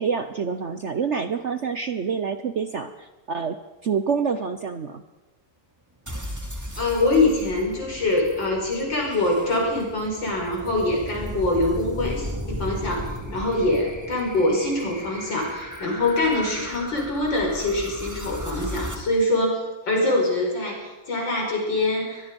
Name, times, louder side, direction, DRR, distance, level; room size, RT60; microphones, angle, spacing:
voice 1, 0.0-2.9 3.3-3.6 3.8-5.0, right 6 dB, 55° right, 10 dB, 0.8 m, -26 dB
sound 1, 6.1-19.0, equal, 10° right, 2.3 m, -36 dB
voice 2, 6.8-22.3, left 2 dB, 70° left, 0 dB, 5.9 m, -24 dB
22.0 x 22.0 x 5.3 m, 1.1 s
omnidirectional pair, 2.1 m